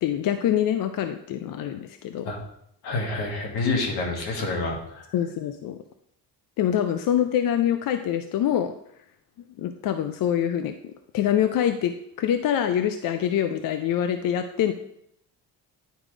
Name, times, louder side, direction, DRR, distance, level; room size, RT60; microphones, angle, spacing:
voice 1, 0.0-2.3 5.1-5.8 6.6-8.7 9.6-14.7, left 10 dB, 60° left, 9 dB, 0.5 m, -25 dB
voice 2, 2.8-5.0, left 3 dB, 85° left, 1 dB, 1.8 m, -28 dB
10.0 x 5.0 x 3.2 m, 0.73 s
cardioid pair, 120°, 38 cm